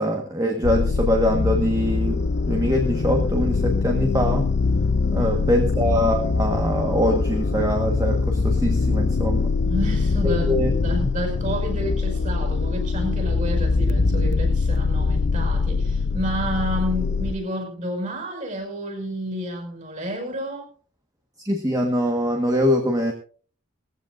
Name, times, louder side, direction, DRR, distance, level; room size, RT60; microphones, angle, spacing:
voice 1, 0.0-4.5 5.1-9.5 10.2-10.7 11.0-11.2 21.4-23.1, equal, 20° right, 2 dB, 1.4 m, -23 dB
sound 1, 0.6-17.3, left 4 dB, 55° left, 0.5 m, -23 dB
voice 2, 5.2-5.5 9.6-20.7, equal, 35° right, 4 dB, 5.5 m, -30 dB
19.5 x 15.0 x 2.6 m, 0.41 s
head